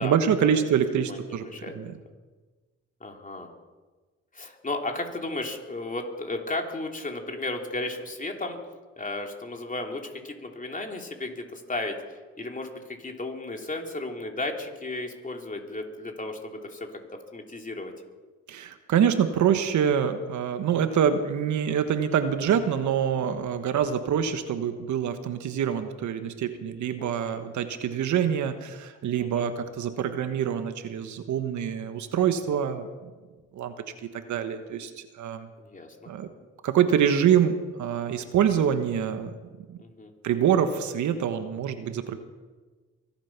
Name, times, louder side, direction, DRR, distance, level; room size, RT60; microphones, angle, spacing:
voice 1, 0.0-1.4 1.7-1.9 18.5-32.9 33.5-33.7 34.1-34.9 35.2-35.5 36.1-36.3 36.6-39.3 39.7-39.8 40.2-42.2, right 8 dB, 75° right, 9 dB, 1.4 m, -25 dB
voice 2, 0.9-1.7 3.0-3.5 4.3-8.6 9.0-16.9 17.3-17.9 27.0-27.4 29.2-29.5 35.6-35.9 39.8-40.1, left 2 dB, 25° left, 2 dB, 3.2 m, -34 dB
24.0 x 8.9 x 6.0 m, 1.3 s
supercardioid pair, 65°, 30 cm